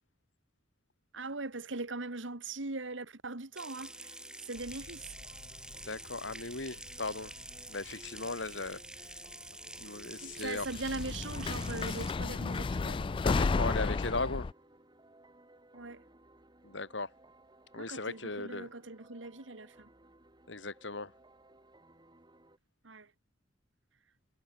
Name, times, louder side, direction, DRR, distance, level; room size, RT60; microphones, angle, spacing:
voice 1, 1.1-5.1 10.2-13.2 15.7-16.0 17.8-19.9 22.8-23.1, right 3 dB, 80° right, 2.0 m, -41 dB
sound 1, 3.5-22.6, right 1 dB, 25° right, 5.1 m, -60 dB
Water tap faucet / Sink (filling or washing) / Trickle dribble, 3.6-12.1, right 1 dB, 5° right, 3.0 m, -48 dB
sound 2, 4.6-6.6 6.9-7.6 8.7-8.8 10.4-14.5, left 4 dB, 25° left, 0.3 m, -33 dB
voice 2, 5.8-7.3 7.7-8.8 9.8-10.7 13.2-14.5 16.6-17.1 17.7-18.7 20.5-21.1, left 3 dB, 70° left, 3.4 m, -37 dB
head